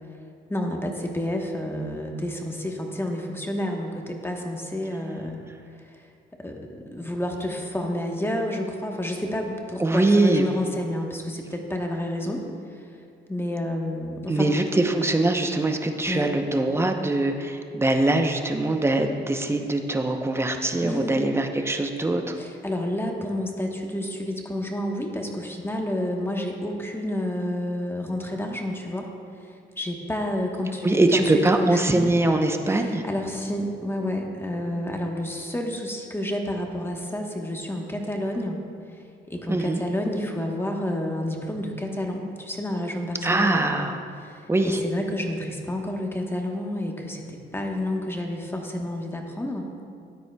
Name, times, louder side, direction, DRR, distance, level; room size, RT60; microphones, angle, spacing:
voice 1, 0.5-5.4 5.9-6.0 6.4-12.4 13.3-14.5 16.1-16.3 20.8-21.2 22.4-29.1 29.4-32.1 32.7-38.6 39.3-43.7 44.2-49.7, left 1 dB, 10° left, 1 dB, 1.1 m, -30 dB
voice 2, 9.8-10.5 14.3-22.4 30.8-33.0 39.5-39.8 43.2-43.9 44.5-44.8, right 2 dB, 10° right, 5 dB, 0.7 m, -22 dB
13.5 x 9.3 x 2.3 m, 2.3 s
cardioid pair, 90°, 20 cm